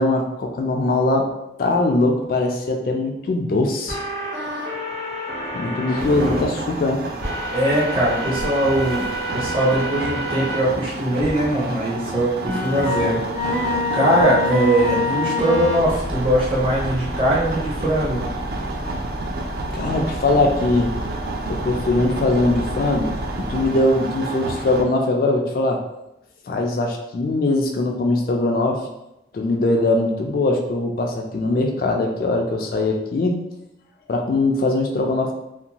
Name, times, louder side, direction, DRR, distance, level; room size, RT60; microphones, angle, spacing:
voice 1, 0.0-1.3 1.6-4.0 5.5-7.1 10.4-10.5 19.7-20.9 21.5-25.8 26.5-28.8 29.3-33.4 34.1-35.3, left 2 dB, 50° left, 2 dB, 0.3 m, -21 dB
sound 1, 3.9-6.4 7.2-10.6 11.2-11.3 12.4-23.7, left 1 dB, 90° right, 0.8 m, -28 dB
sound 2, 6.0-24.8, right 2 dB, 55° right, 0.3 m, -31 dB
voice 2, 7.5-9.1 9.3-13.2 13.9-18.2, right 1 dB, 30° right, -5 dB, 0.7 m, -21 dB
2.5 x 2.2 x 2.8 m, 0.88 s
head